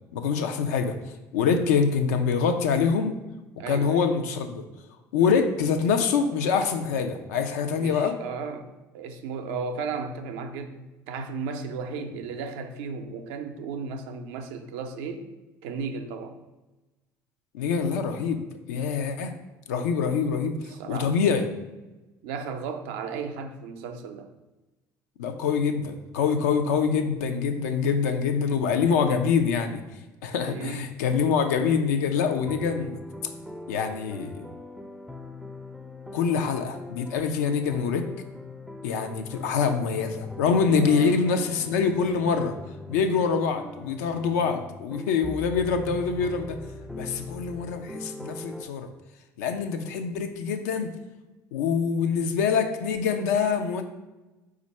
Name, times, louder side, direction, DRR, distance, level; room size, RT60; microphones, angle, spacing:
voice 1, 0.1-0.9 1.3-3.2 3.7-4.6 5.1-8.1 12.0-12.1 17.5-18.4 18.7-19.3 19.7-21.5 25.2-29.8 30.2-33.0 33.7-34.5 36.1-38.0 38.8-42.6 42.9-46.6 46.9-48.9 49.4-50.9 51.5-53.8, left 6 dB, 85° left, 6 dB, 0.5 m, -25 dB
voice 2, 3.6-4.0 7.7-15.3 15.6-16.4 20.7-21.2 22.2-24.3 30.4-31.0 40.7-41.2, right 5 dB, 75° right, 7 dB, 0.5 m, -35 dB
sound 1, 32.3-48.6, left 2 dB, 5° right, 0.4 m, -41 dB
4.3 x 2.5 x 4.1 m, 1.1 s
hypercardioid pair, 70°, 9 cm